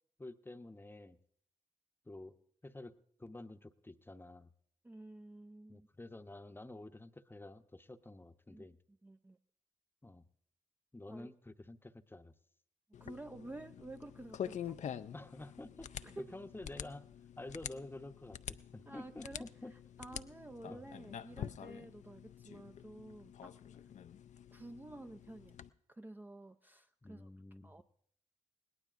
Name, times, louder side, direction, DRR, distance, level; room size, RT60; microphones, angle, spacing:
voice 1, 0.2-1.2 2.1-2.4 2.6-2.9 3.2-4.5 5.7-8.8 10.0-10.2 10.9-12.3 15.1-17.1 17.4-19.7 20.7-20.9 27.0-27.8, left 2 dB, 15° left, 9 dB, 0.8 m, -50 dB
voice 2, 4.8-5.9 8.5-9.4 11.1-11.3 13.0-14.8 16.0-16.3 18.9-23.6 24.5-25.6 25.9-27.3 27.6-27.8, right 2 dB, 15° right, 7 dB, 0.5 m, -51 dB
sound 1, 12.9-25.7, left 9 dB, 60° left, 0.5 m, -47 dB
21.5 x 18.0 x 2.5 m, 0.65 s
supercardioid pair, 50°, 14 cm